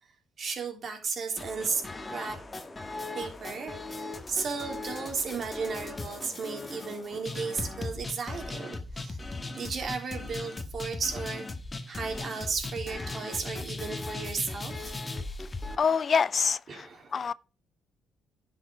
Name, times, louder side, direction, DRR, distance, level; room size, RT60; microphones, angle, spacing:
voice 1, 0.4-1.8 2.1-2.4 3.1-9.2 9.6-11.4 11.9-14.9 16.7-17.3, right 5 dB, 55° right, 3.3 m, -34 dB
sound 1, 1.4-15.8, left 2 dB, 25° left, 1.7 m, -38 dB
voice 2, 15.8-16.9 17.1-17.3, left 6 dB, 45° left, 0.4 m, -25 dB
10.0 x 6.1 x 5.0 m
supercardioid pair, 60°, 0 cm